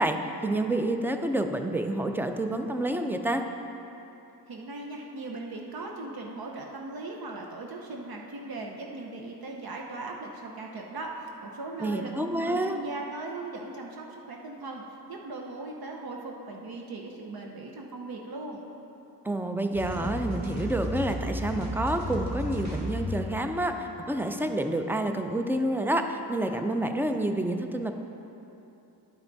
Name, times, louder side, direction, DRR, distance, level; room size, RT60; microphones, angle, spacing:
voice 1, 0.0-3.4 11.8-12.8 19.2-27.9, right 1 dB, 5° right, 6 dB, 0.4 m, -28 dB
voice 2, 4.5-18.6, right 2 dB, 60° right, 1 dB, 0.8 m, -39 dB
sound 1, 19.7-24.7, left 1 dB, 40° right, 1.7 m, -34 dB
10.5 x 5.8 x 4.0 m, 3.0 s
cardioid pair, 85°, 42 cm